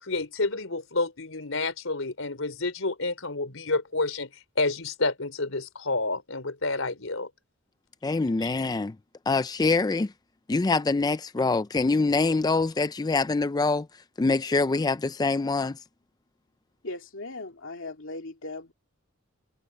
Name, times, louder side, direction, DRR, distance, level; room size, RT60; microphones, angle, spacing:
voice 1, 0.0-4.3 4.6-7.3 8.4-8.5, left 3 dB, 85° left, 3.8 m, -29 dB
voice 2, 8.0-9.0 9.3-10.1 10.5-13.9 14.2-15.8, left 3 dB, 20° left, 0.4 m, -24 dB
voice 3, 16.8-18.7, left 2 dB, 70° left, 2.5 m, -38 dB
head